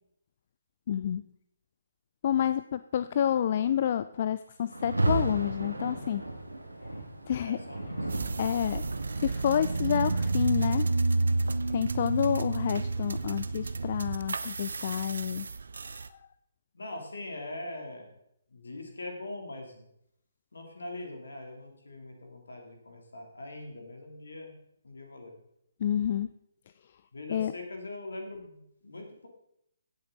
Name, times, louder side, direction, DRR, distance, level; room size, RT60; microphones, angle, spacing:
voice 1, 0.9-1.2 2.2-6.2 7.3-7.6 8.4-8.8 9.2-10.9 11.7-15.5 16.1-16.2 25.8-26.3 27.3-27.5, left 9 dB, 40° left, 14 dB, 0.4 m, -29 dB
Rain, 4.7-13.8, right 2 dB, 80° right, 2.0 m, -35 dB
voice 2, 7.4-8.1 16.7-18.1 18.5-19.9 20.5-24.5 24.8-25.3 27.1-29.3, left 2 dB, 65° left, 2 dB, 3.1 m, -42 dB
sound 1, 8.1-16.1, right 3 dB, 60° right, 0.6 m, -31 dB
16.5 x 7.6 x 4.0 m, 0.76 s
figure-of-eight pair, 140°, 0 cm